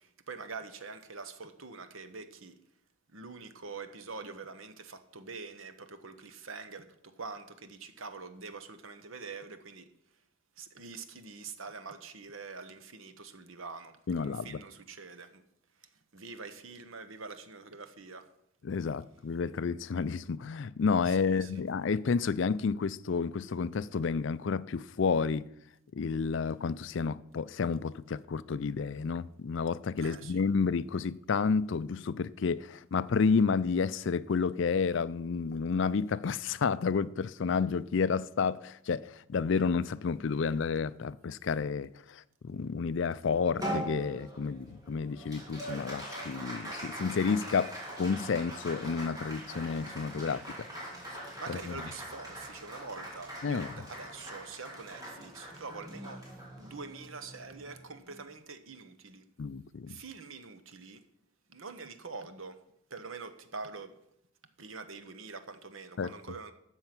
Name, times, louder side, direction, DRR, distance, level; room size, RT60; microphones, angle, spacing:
voice 1, 0.3-2.5 3.1-6.8 7.2-9.8 10.6-13.9 14.2-15.3 16.1-18.2 30.0-30.3 51.4-56.2 56.6-59.2 59.9-61.0 61.5-62.5 62.9-63.9 64.6-66.5, right 4 dB, 75° right, 1.2 m, -45 dB
voice 2, 14.1-14.6 18.6-25.5 25.9-50.4 51.5-51.9 53.4-53.9 59.4-60.0 66.0-66.4, left 5 dB, 65° left, 0.4 m, -30 dB
Applause, 43.6-58.2, right 1 dB, 20° right, 3.5 m, -42 dB
13.0 x 7.9 x 6.0 m
head